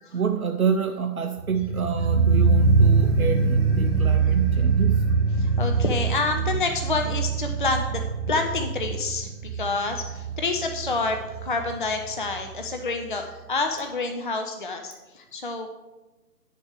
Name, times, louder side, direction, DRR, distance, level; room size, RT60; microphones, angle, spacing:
voice 1, 0.1-5.0, right 6 dB, 65° right, 6 dB, 0.7 m, -28 dB
sound 1, 1.4-12.4 12.6-12.7, right 4 dB, 15° right, 1.2 m, -23 dB
voice 2, 5.4-8.0 8.3-15.7, left 3 dB, 35° left, 4 dB, 0.5 m, -28 dB
10.0 x 6.6 x 4.8 m, 1.1 s
figure-of-eight pair, 145°, 47 cm